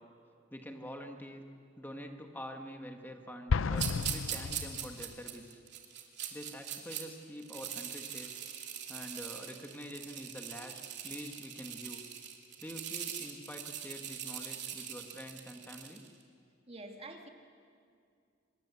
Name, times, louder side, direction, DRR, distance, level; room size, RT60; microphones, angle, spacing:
voice 1, 0.5-1.4 1.8-5.6 6.3-8.3 8.9-12.0 12.6-16.0, equal, 10° left, 3 dB, 1.5 m, -46 dB
Explosion, 3.5-5.3, left 5 dB, 85° left, 0.5 m, -33 dB
sound 1, 3.8-7.0 7.4-16.1, right 9 dB, 60° right, 3.0 m, -42 dB
voice 2, 16.7-17.3, right 2 dB, 30° right, 3 dB, 2.1 m, -46 dB
26.0 x 22.0 x 8.2 m, 2.3 s
head